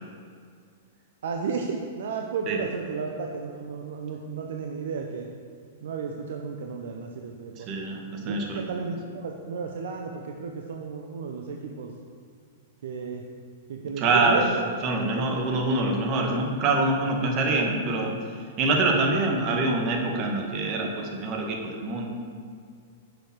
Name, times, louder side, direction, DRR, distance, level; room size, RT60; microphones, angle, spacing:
voice 1, 1.2-5.3 5.8-7.7 8.2-11.9 12.8-13.3 13.7-14.6 15.2-15.3, right 5 dB, 65° right, 2 dB, 0.9 m, -33 dB
voice 2, 7.6-8.8 14.0-14.4 14.8-18.1 18.6-22.1, right 2 dB, 35° right, 1 dB, 1.8 m, -25 dB
10.5 x 7.2 x 4.7 m, 2.2 s
figure-of-eight pair, 105°, 0 cm